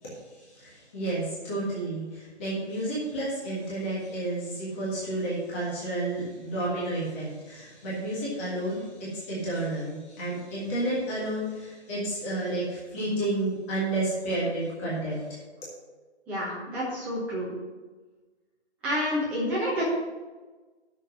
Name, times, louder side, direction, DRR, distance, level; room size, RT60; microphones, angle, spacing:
voice 1, 0.0-15.4, right 1 dB, 10° left, -7 dB, 1.6 m, -31 dB
voice 2, 16.3-17.5 18.8-19.8, equal, 5° right, -9 dB, 1.2 m, -29 dB
8.9 x 6.5 x 6.2 m, 1.3 s
figure-of-eight pair, 155°, 34 cm